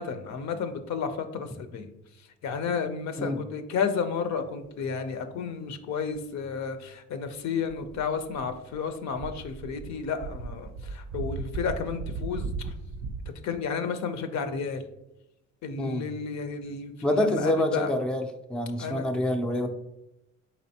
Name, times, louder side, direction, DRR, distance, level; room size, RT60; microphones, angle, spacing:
voice 1, 0.0-1.9 2.4-12.7 13.4-14.8 15.6-17.9 18.8-19.1, left 6 dB, 65° left, 9 dB, 0.6 m, -32 dB
sound 1, 7.7-8.8 9.1-13.3, right 4 dB, 65° right, 0.5 m, -36 dB
voice 2, 15.8-16.1 17.0-18.2 18.5-19.7, left 1 dB, 5° left, 5 dB, 0.3 m, -26 dB
4.2 x 3.8 x 2.7 m, 0.89 s
cardioid pair, 90°, 30 cm